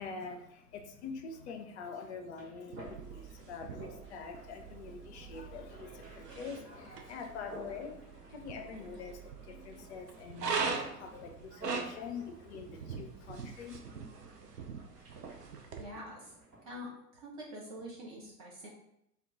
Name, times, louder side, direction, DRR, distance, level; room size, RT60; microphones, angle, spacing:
voice 1, 0.0-13.8, left 5 dB, 45° left, 4 dB, 0.5 m, -45 dB
sound 1, 2.0-16.8, right 2 dB, 45° right, 1.3 m, -54 dB
sound 2, 2.7-15.8, right 5 dB, 85° right, 0.5 m, -42 dB
voice 2, 15.8-16.3 16.6-18.7, equal, 25° right, -3 dB, 0.4 m, -45 dB
2.3 x 2.2 x 3.7 m, 0.80 s
figure-of-eight pair, 90°, 47 cm